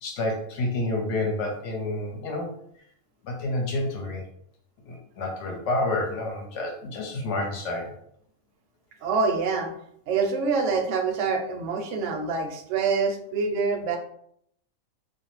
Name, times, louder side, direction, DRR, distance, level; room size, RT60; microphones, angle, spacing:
voice 1, 0.0-2.5 3.2-4.2 4.9-7.9, left 2 dB, 65° left, 1 dB, 0.9 m, -29 dB
voice 2, 9.0-9.7 10.1-14.0, right 4 dB, 65° right, 3 dB, 0.8 m, -26 dB
2.5 x 2.0 x 3.0 m, 0.68 s
omnidirectional pair, 1.5 m